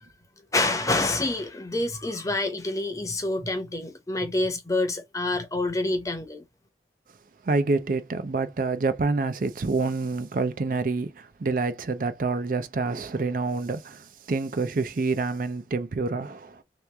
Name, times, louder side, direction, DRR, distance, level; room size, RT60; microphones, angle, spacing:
voice 1, 0.5-6.4, left 2 dB, 20° left, 0.8 m, -27 dB
voice 2, 7.4-16.6, right 3 dB, 50° right, 0.5 m, -27 dB
3.4 x 3.0 x 3.2 m
head